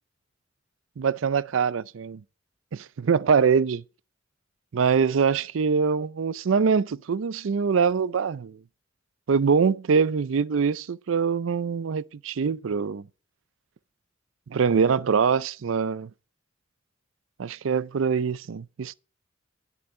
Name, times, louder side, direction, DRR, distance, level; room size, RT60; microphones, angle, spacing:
voice 1, 1.0-2.2 2.7-3.8 4.7-8.6 9.3-13.0 14.5-16.1 17.4-18.9, right 6 dB, 70° right, 0.4 m, -24 dB
10.5 x 8.4 x 4.2 m
head